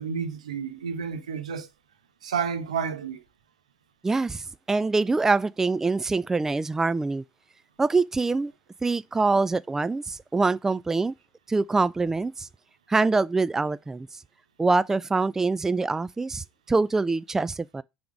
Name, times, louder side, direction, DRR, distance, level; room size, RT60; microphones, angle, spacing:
voice 1, 0.0-1.7 2.2-3.2, right 6 dB, 80° right, 1.0 m, -30 dB
voice 2, 4.0-7.2 7.8-8.5 8.8-11.1 11.5-12.5 12.9-14.1 14.6-17.8, right 3 dB, 10° right, 0.3 m, -24 dB
6.8 x 3.5 x 6.1 m
figure-of-eight pair, 70°, 4 cm